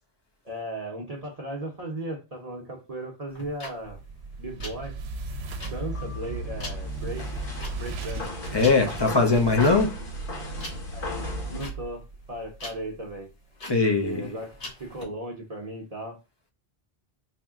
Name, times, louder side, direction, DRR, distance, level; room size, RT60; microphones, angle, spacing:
voice 1, 0.4-4.0 4.4-5.0 5.6-7.2 7.7-8.2 9.6-9.8 10.9-13.3 14.0-14.5 14.8-16.2, right 1 dB, 40° right, 0.8 m, -36 dB
sound 1, 3.3-15.0, left 2 dB, 75° left, 1.7 m, -43 dB
sound 2, 3.8-13.0, right 3 dB, 90° right, 0.8 m, -37 dB
sound 3, 5.9-11.7, left 2 dB, 55° left, 1.2 m, -37 dB
voice 2, 8.5-9.9 13.7-14.3, left 3 dB, 30° left, 0.5 m, -21 dB
4.3 x 2.1 x 3.5 m
omnidirectional pair, 1.0 m